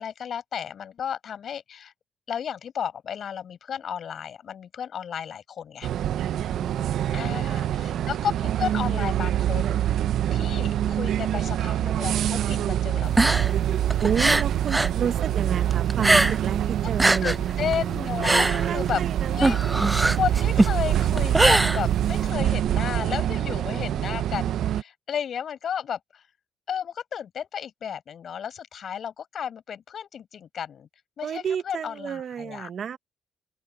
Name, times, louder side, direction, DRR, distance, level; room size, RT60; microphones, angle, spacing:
voice 1, 0.0-1.9 2.3-5.9 7.1-9.8 10.3-13.6 17.2-19.0 19.3-19.9 20.2-26.2 26.7-30.9 31.2-32.7, left 8 dB, 60° left, 7.7 m, -33 dB
sound 1, 5.8-24.8, right 11 dB, 75° right, 0.6 m, -25 dB
voice 2, 6.5-8.1 14.0-17.4 18.3-20.0 31.2-33.0, right 7 dB, 60° right, 1.5 m, -31 dB
sound 2, 13.0-15.0 15.3-16.6 16.9-22.3, right 2 dB, 15° right, 0.6 m, -22 dB
open air
cardioid pair, 90°, 0 cm